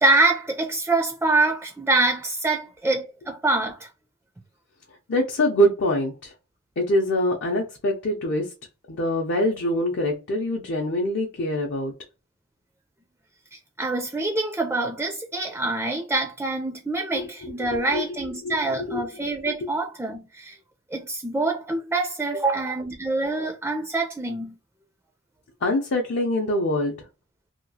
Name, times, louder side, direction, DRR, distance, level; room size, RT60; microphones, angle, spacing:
voice 1, 0.0-3.9 13.5-20.6 20.9-24.5, right 2 dB, 10° right, 0.3 m, -25 dB
voice 2, 5.1-6.3 6.8-8.5 8.9-11.9 17.7-18.0 18.4-19.1 25.6-26.9, equal, 60° left, 0.6 m, -24 dB
2.8 x 2.3 x 2.7 m
head